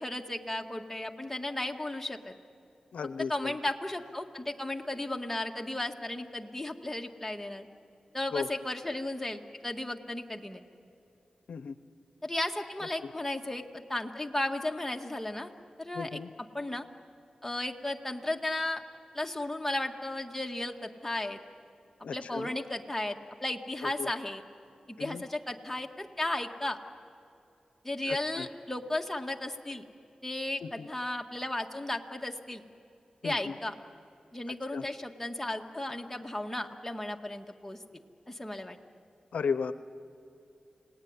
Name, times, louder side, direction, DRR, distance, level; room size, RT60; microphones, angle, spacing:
voice 1, 0.0-2.3 3.3-7.7 8.1-10.6 12.2-15.5 15.8-16.2 16.5-16.9 17.4-18.8 19.1-21.4 22.1-24.4 24.9-26.8 27.8-29.8 30.2-32.6 33.2-33.7 34.3-37.8 38.3-38.8, left 1 dB, 10° left, 3 dB, 2.0 m, -35 dB
voice 2, 2.9-3.6 8.3-8.5 11.5-11.8 13.0-13.1 15.9-16.3 22.0-22.5 23.8-24.1 25.0-25.2 28.1-28.5 30.6-30.9 33.2-33.5 34.7-34.8 39.3-39.7, left 5 dB, 90° left, 13 dB, 0.7 m, -35 dB
29.5 x 18.5 x 9.8 m, 2.7 s
cardioid pair, 55°, 2 cm